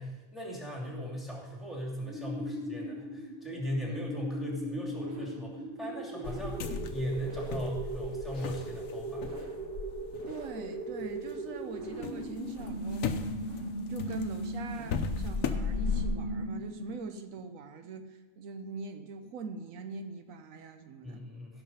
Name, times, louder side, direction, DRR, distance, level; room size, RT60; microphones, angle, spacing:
voice 1, 0.0-6.6 6.9-9.3 21.0-21.6, equal, ahead, -3 dB, 2.6 m, -38 dB
sound 1, 2.0-16.9, right 1 dB, 40° right, 1.9 m, -38 dB
sound 2, 6.2-11.4 11.7-16.1, left 5 dB, 80° left, 1.2 m, -37 dB
voice 2, 10.3-13.1 13.9-21.2, right 4 dB, 80° right, 7 dB, 1.2 m, -42 dB
16.0 x 5.9 x 5.6 m, 1.2 s
omnidirectional pair, 1.4 m